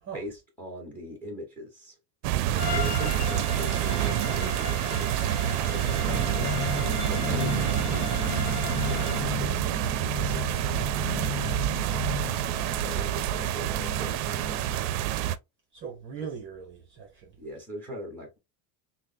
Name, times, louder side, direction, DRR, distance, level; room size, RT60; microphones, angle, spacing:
voice 1, 0.1-2.0 2.7-5.1 5.6-8.2 8.9-9.6 10.0-11.7 12.7-15.0 16.2-16.3 17.4-18.4, equal, 5° left, 1.0 m, -41 dB
sound 1, 2.2-15.4, right 13 dB, 70° right, 0.5 m, -28 dB
Bowed string instrument, 2.5-9.3, left 6 dB, 35° left, 0.5 m, -37 dB
sound 2, 6.1-14.8, left 10 dB, 70° left, 0.8 m, -36 dB
voice 2, 12.5-13.1 15.7-17.4, right 6 dB, 25° right, 0.8 m, -41 dB
5.8 x 2.1 x 2.6 m
cardioid pair, 180°, 46 cm